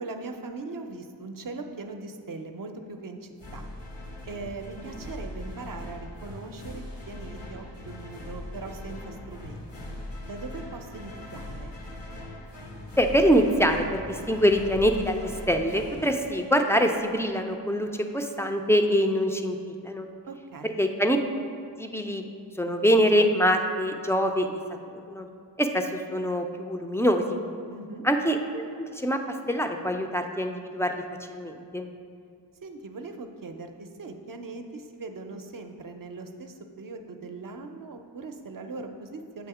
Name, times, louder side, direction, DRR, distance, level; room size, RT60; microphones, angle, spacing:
voice 1, 0.0-3.7 4.3-9.9 10.2-11.7 20.3-20.8 27.7-28.0 32.6-39.5, right 3 dB, 50° right, 5 dB, 0.5 m, -40 dB
sound 1, 3.4-17.0, left 1 dB, 75° left, 0.9 m, -40 dB
voice 2, 13.0-20.1 20.6-21.2 21.8-22.2 22.6-24.6 24.9-25.3 25.6-27.4 28.0-31.0 31.3-31.9, equal, 5° left, 4 dB, 0.3 m, -24 dB
7.7 x 2.8 x 4.8 m, 2.3 s
wide cardioid pair, 60°, 44 cm